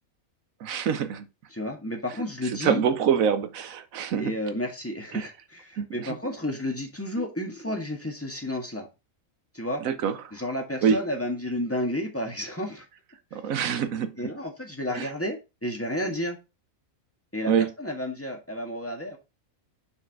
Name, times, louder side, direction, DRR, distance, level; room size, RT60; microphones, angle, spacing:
voice 1, 0.6-1.3 2.6-4.3 5.1-5.3 5.8-6.1 9.8-10.2 10.8-11.0 13.3-14.2 14.9-15.1 17.5-17.7, right 7 dB, 80° right, 1.3 m, -25 dB
voice 2, 1.5-2.8 4.2-8.9 9.5-9.8 10.3-12.9 13.3-13.4 14.2-16.4 17.3-19.2, left 1 dB, 10° left, 1.6 m, -31 dB
5.7 x 4.8 x 4.6 m
omnidirectional pair, 1.4 m